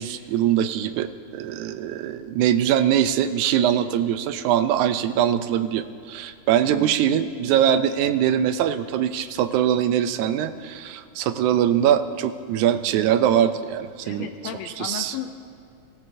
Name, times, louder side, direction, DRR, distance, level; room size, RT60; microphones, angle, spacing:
voice 1, 0.0-14.3 14.8-15.2, right 10 dB, 85° right, 11 dB, 2.0 m, -22 dB
voice 2, 14.0-15.3, left 10 dB, 75° left, 7 dB, 1.6 m, -34 dB
24.5 x 14.5 x 2.7 m, 2.4 s
omnidirectional pair, 3.4 m